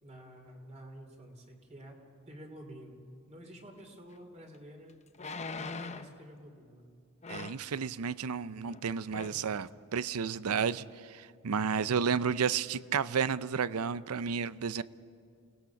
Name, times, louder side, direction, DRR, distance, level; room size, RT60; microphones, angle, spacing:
voice 1, 0.0-2.0 2.3-4.9 5.5-6.9, equal, 30° right, 3 dB, 2.7 m, -50 dB
sound 1, 4.1-4.2 5.1-6.2 7.2-7.7 8.7-8.8 9.1-9.4 10.0-10.1, left 4 dB, 30° left, 0.7 m, -41 dB
voice 2, 7.3-14.8, right 6 dB, 85° right, 17 dB, 0.6 m, -32 dB
29.0 x 18.5 x 5.9 m, 2.3 s
head